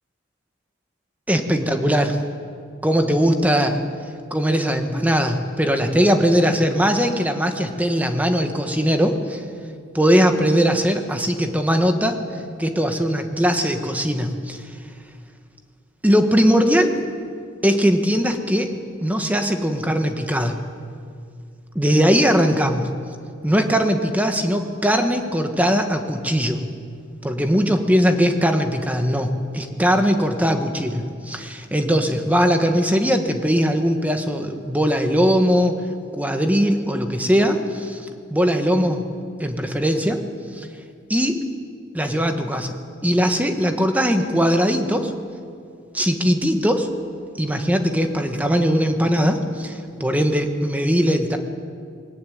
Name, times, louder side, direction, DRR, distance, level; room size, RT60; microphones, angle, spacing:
voice 1, 1.3-2.2 2.8-3.8 4.3-9.4 9.9-12.2 12.6-14.6 16.0-17.0 17.6-18.7 19.0-20.6 21.7-22.9 23.4-26.6 27.2-35.8 36.1-39.1 39.4-40.3 40.5-40.7 41.1-41.4 41.9-42.8 43.0-45.1 45.9-46.9 47.4-51.4, equal, 10° right, 5 dB, 1.4 m, -20 dB
20.5 x 17.5 x 9.4 m, 2.2 s
head